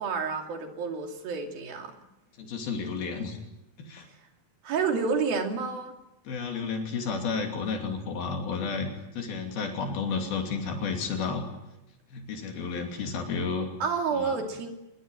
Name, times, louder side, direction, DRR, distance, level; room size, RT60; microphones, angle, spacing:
voice 1, 0.0-2.0 4.6-6.0 13.8-14.7, right 5 dB, 80° right, 3 dB, 4.6 m, -29 dB
voice 2, 2.4-3.4 3.8-4.1 6.2-11.5 12.1-13.7 14.1-14.4, left 5 dB, 80° left, 3 dB, 4.7 m, -32 dB
23.0 x 21.5 x 9.2 m, 0.92 s
omnidirectional pair, 4.2 m